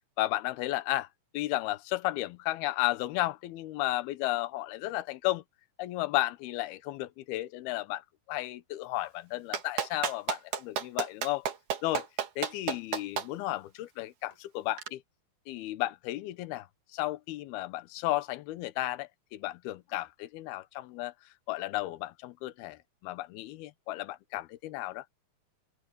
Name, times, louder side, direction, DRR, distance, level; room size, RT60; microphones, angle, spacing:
voice 1, 0.2-1.1 1.3-5.4 5.8-11.5 11.8-12.1 12.4-15.0 15.5-16.7 16.9-21.1 21.5-25.1, left 17 dB, 80° left, 2.8 m, -33 dB
Clapping, 9.5-13.3 14.8-14.9, right 8 dB, 60° right, 3.1 m, -31 dB
open air
omnidirectional pair, 4.5 m